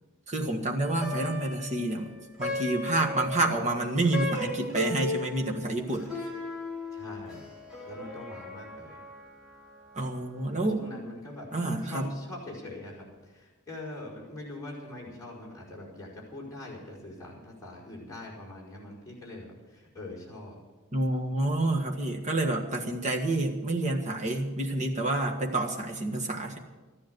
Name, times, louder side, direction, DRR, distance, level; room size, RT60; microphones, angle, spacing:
voice 1, 0.3-2.1 2.4-6.1 10.0-10.8 11.5-12.1 20.9-26.6, right 2 dB, 35° right, 2 dB, 1.7 m, -28 dB
Plucked string instrument, 0.8-10.2, left 1 dB, 5° right, 3.8 m, -37 dB
voice 2, 6.9-7.5 7.9-9.0 10.5-20.6, left 2 dB, 15° left, -5 dB, 5.1 m, -43 dB
14.0 x 10.5 x 7.9 m, 1.2 s
head